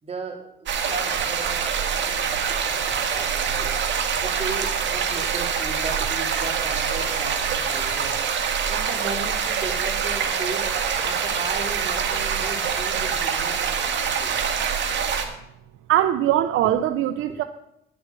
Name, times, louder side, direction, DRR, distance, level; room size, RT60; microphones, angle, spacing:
voice 1, 0.0-14.4, right 3 dB, 30° right, -1 dB, 4.0 m, -36 dB
sound 1, 0.7-15.3, right 7 dB, 65° right, 1.9 m, -25 dB
voice 2, 14.9-15.3 15.9-17.4, right 12 dB, 85° right, 9 dB, 0.6 m, -22 dB
10.0 x 7.8 x 7.5 m, 0.80 s
cardioid pair, 90°, 20 cm